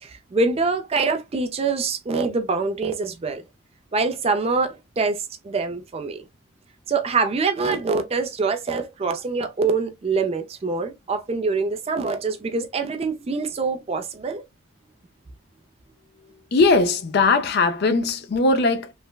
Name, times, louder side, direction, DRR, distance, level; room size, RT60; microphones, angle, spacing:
voice 1, 0.0-3.4 3.9-6.2 6.9-14.4, right 4 dB, 30° right, 0.3 m, -25 dB
voice 2, 16.5-18.9, left 3 dB, 50° left, 0.4 m, -19 dB
3.2 x 2.0 x 2.2 m
head